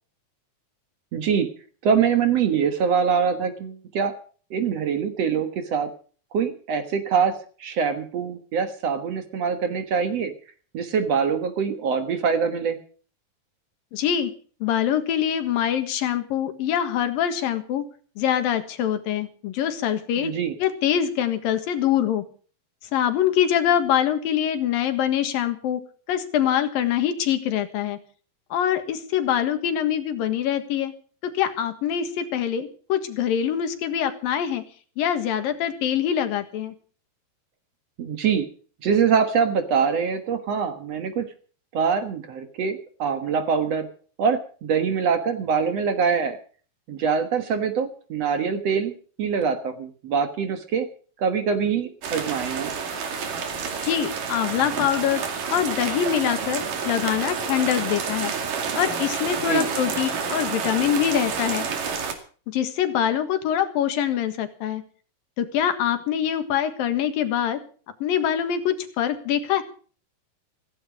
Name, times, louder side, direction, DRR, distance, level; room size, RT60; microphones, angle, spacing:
voice 1, 1.1-1.5 1.8-4.1 4.5-5.9 6.3-10.3 10.7-12.8 20.2-20.5 38.0-38.5 38.8-41.2 41.7-43.9 44.2-46.4 46.9-48.9 49.2-50.9 51.2-52.7 59.5-59.7, right 6 dB, 55° right, 8 dB, 2.2 m, -24 dB
voice 2, 13.9-14.3 14.6-17.8 18.2-20.3 20.6-22.2 22.9-25.8 26.1-28.0 28.5-30.9 31.2-34.6 35.0-36.8 53.8-55.2 55.5-58.3 58.8-61.7 62.5-64.8 65.4-67.6 68.0-69.6, left 10 dB, 85° left, 9 dB, 3.4 m, -24 dB
sound 1, 52.0-62.1, right 6 dB, 70° right, 4.1 m, -29 dB
16.0 x 15.5 x 5.1 m, 0.42 s
omnidirectional pair, 4.0 m